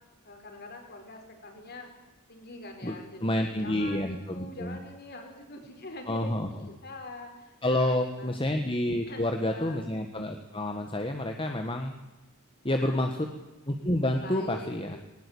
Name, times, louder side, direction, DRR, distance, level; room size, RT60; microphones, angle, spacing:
voice 1, 0.2-1.9 2.3-6.4 6.7-8.4 9.1-9.9 12.8-13.2 14.2-15.0, left 2 dB, 45° left, 3 dB, 5.2 m, -44 dB
voice 2, 3.2-4.8 6.1-6.5 7.6-11.9 12.6-13.3 13.7-15.0, left 1 dB, 25° left, 5 dB, 1.4 m, -29 dB
20.0 x 19.5 x 8.5 m, 1.1 s
head